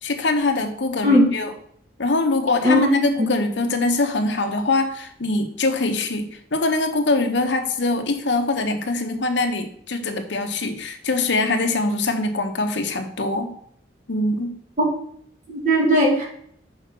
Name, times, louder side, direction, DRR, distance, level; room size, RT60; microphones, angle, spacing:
voice 1, 0.0-1.5 2.0-13.5 14.1-14.5, left 2 dB, 80° left, 6 dB, 1.0 m, -23 dB
voice 2, 2.6-3.3 14.8-14.9 15.5-16.2, equal, 45° right, -2 dB, 2.4 m, -18 dB
6.1 x 4.9 x 5.9 m, 0.64 s
head